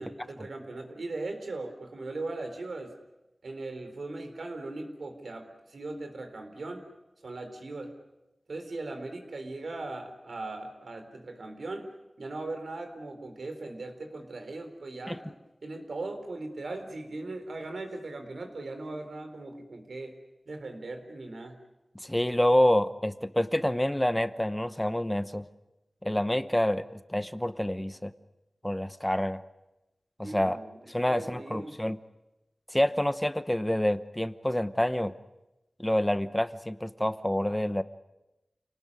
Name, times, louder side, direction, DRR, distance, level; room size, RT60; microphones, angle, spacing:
voice 1, 0.0-2.9 3.4-6.8 7.2-7.9 8.5-11.9 12.2-20.2 20.5-21.6 30.2-31.8, right 2 dB, 85° right, 7 dB, 4.0 m, -39 dB
voice 2, 22.0-25.4 26.0-28.1 28.6-29.4 30.2-30.6 30.9-32.0 32.7-35.1 35.8-37.8, left 1 dB, 10° left, 12 dB, 0.9 m, -27 dB
28.5 x 19.0 x 9.8 m, 0.99 s
wide cardioid pair, 75°, 0 cm